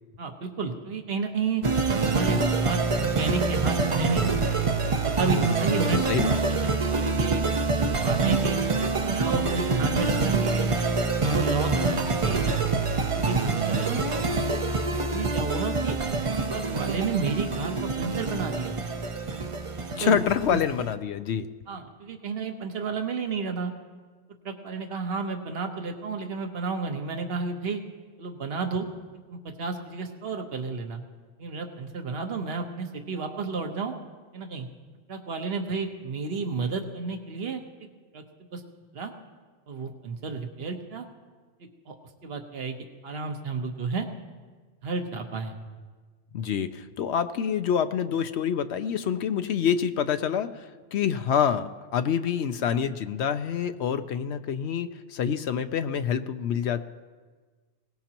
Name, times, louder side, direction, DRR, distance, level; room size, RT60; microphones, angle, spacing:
voice 1, 0.2-1.6 2.0-4.3 4.8-7.4 7.7-8.6 9.1-10.8 11.3-12.6 13.2-14.0 14.5-14.6 14.9-16.2 16.5-18.8 19.9-20.2 20.5-20.6 21.7-23.7 24.4-27.8 28.2-28.9 29.3-31.0 31.4-33.9 34.3-34.7 35.1-37.9 38.1-38.2 38.5-38.6 38.9-39.1 39.7-41.1 41.9-42.0 42.2-44.1 44.8-45.5, right 4 dB, 60° right, 4 dB, 1.3 m, -32 dB
sound 1, 1.6-20.9, right 3 dB, 35° right, 0.6 m, -26 dB
voice 2, 6.1-6.4 19.9-21.5 46.3-56.8, left 8 dB, 75° left, 10 dB, 0.9 m, -27 dB
21.5 x 18.0 x 2.9 m, 1.4 s
omnidirectional pair, 1.2 m